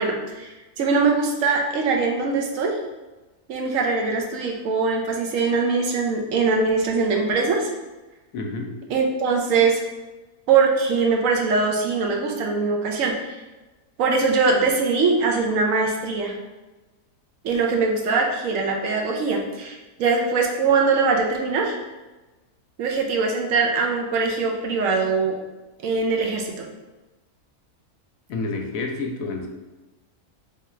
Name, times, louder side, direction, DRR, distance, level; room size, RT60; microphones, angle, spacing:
voice 1, 0.0-2.8 3.5-7.7 8.9-9.8 10.5-13.4 14.0-16.3 17.4-21.8 22.8-25.3 25.8-26.7, right 4 dB, 70° right, 1 dB, 0.9 m, -22 dB
voice 2, 8.3-8.7 28.3-29.5, left 3 dB, 70° left, 3 dB, 1.0 m, -29 dB
3.8 x 2.3 x 4.2 m, 1.2 s
omnidirectional pair, 1.6 m